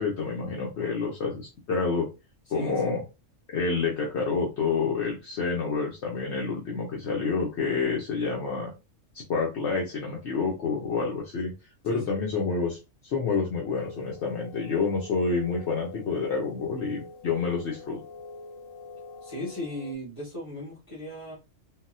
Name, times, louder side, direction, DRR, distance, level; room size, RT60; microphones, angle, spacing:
voice 1, 0.0-2.1 2.5-3.0 3.5-8.7 9.1-11.5 11.8-12.8 13.0-18.0, left 4 dB, 60° left, -1 dB, 1.0 m, -28 dB
voice 2, 2.5-2.9 11.9-12.1 19.2-21.3, left 1 dB, 25° left, -7 dB, 1.8 m, -37 dB
sound 1, 13.7-19.9, left 3 dB, 85° left, 1.0 m, -45 dB
3.9 x 2.1 x 2.6 m, 0.27 s
omnidirectional pair, 1.3 m